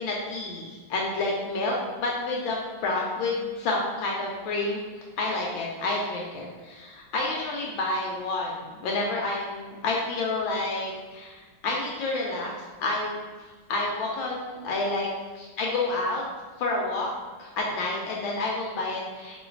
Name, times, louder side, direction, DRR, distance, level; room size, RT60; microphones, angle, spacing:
voice 1, 0.0-4.8 5.2-12.5 12.8-13.2 13.7-15.1 15.3-16.2 16.6-17.1 17.4-19.4, left 2 dB, 75° left, -2 dB, 1.3 m, -29 dB
3.1 x 2.7 x 4.4 m, 1.4 s
omnidirectional pair, 2.3 m